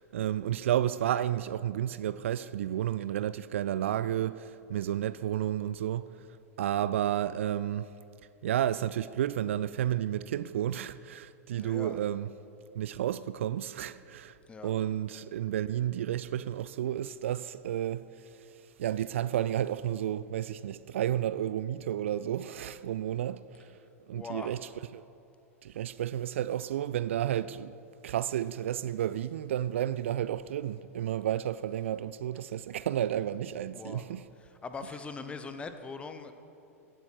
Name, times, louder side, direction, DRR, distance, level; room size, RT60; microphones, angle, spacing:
voice 1, 0.0-6.1 6.6-7.9 8.4-12.3 12.8-14.3 14.6-18.0 18.8-23.6 24.1-25.0 25.6-27.7 28.0-34.3, right 11 dB, 55° right, 0.3 m, -31 dB
voice 2, 11.5-12.0 14.5-14.7 24.1-24.5 33.7-34.0 34.6-36.3, left 4 dB, 15° left, 0.8 m, -41 dB
16.0 x 8.2 x 6.5 m
figure-of-eight pair, 95°, 8 cm